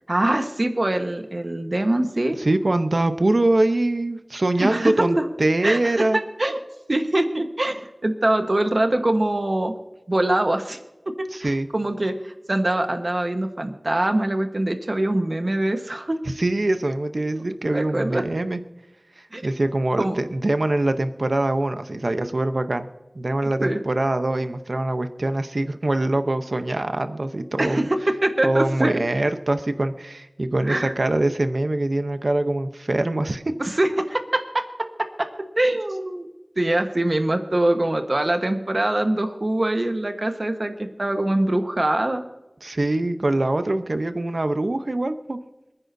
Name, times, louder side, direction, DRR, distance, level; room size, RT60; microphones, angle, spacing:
voice 1, 0.1-2.4 4.6-5.3 5.6-6.6 6.9-9.7 10.1-10.8 11.0-16.2 17.3-18.2 19.3-19.4 20.0-20.2 23.6-23.8 27.6-29.0 30.6-30.9 33.6-34.9 35.2-36.3 36.6-42.2, right 1 dB, 60° right, 6 dB, 1.3 m, -23 dB
voice 2, 2.4-6.2 11.3-11.7 16.4-18.6 19.2-22.9 23.1-27.8 28.4-33.4 42.6-45.4, right 2 dB, 80° right, 8 dB, 0.8 m, -23 dB
27.0 x 9.8 x 2.7 m, 1.1 s
wide cardioid pair, 45°, 0 cm